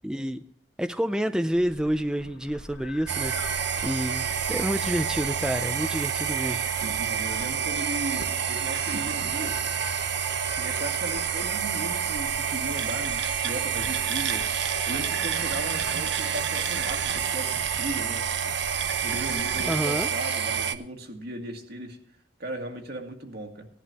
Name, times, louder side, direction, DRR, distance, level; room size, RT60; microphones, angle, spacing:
voice 1, 0.0-0.4 0.8-6.6 19.7-20.1, equal, 5° right, 8 dB, 0.4 m, -29 dB
sound 1, 1.5-19.8, left 2 dB, 80° left, 2.2 m, -45 dB
sound 2, 3.1-20.7, right 8 dB, 80° right, 0.9 m, -28 dB
voice 2, 7.0-9.6 10.6-18.2 19.0-22.0 22.4-23.7, right 1 dB, 65° right, 3 dB, 2.0 m, -37 dB
18.0 x 11.0 x 2.9 m, 0.68 s
head